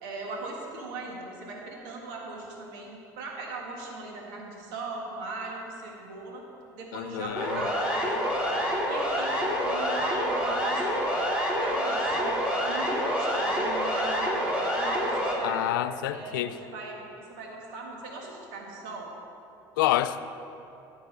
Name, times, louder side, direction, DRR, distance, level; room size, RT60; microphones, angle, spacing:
voice 1, 0.0-6.4 6.8-8.5 8.9-11.1 11.6-15.7 16.1-19.1, right 3 dB, 75° right, -1 dB, 1.8 m, -39 dB
voice 2, 6.9-7.6 15.4-16.5 19.8-20.2, left 14 dB, 85° left, 13 dB, 0.4 m, -28 dB
Siren, 7.4-15.3, equal, 10° right, 2.4 m, -27 dB
12.5 x 4.7 x 6.8 m, 2.8 s
hypercardioid pair, 70°, 11 cm